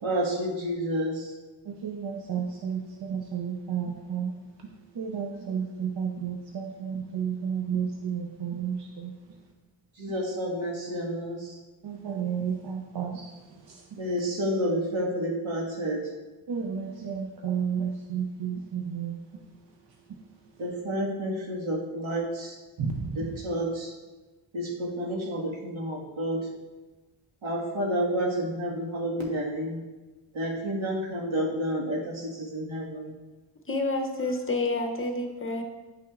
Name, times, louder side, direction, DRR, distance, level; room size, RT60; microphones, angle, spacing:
voice 1, 0.0-1.3 10.0-11.5 14.0-16.1 20.6-22.5 23.2-23.9 24.5-26.5 27.4-29.8 30.3-33.1, equal, 85° right, -3 dB, 1.7 m, -30 dB
voice 2, 1.7-4.3 4.9-9.1 11.8-13.3 13.6-13.8 16.5-19.2 22.8-23.4, right 7 dB, 60° right, 1 dB, 0.6 m, -32 dB
voice 3, 33.7-35.6, left 2 dB, 30° left, 3 dB, 0.7 m, -29 dB
9.9 x 5.9 x 2.4 m, 1.2 s
wide cardioid pair, 140°, 46 cm